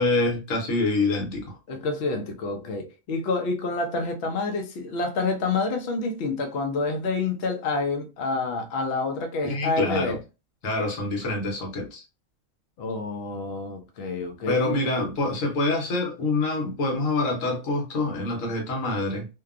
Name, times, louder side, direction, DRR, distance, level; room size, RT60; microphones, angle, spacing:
voice 1, 0.0-1.6 9.4-10.2 10.6-12.0 14.5-19.3, left 2 dB, 80° left, 1.3 m, -26 dB
voice 2, 1.7-10.2 12.8-14.8, left 3 dB, 60° left, 0.8 m, -28 dB
2.7 x 2.2 x 2.4 m
omnidirectional pair, 1.4 m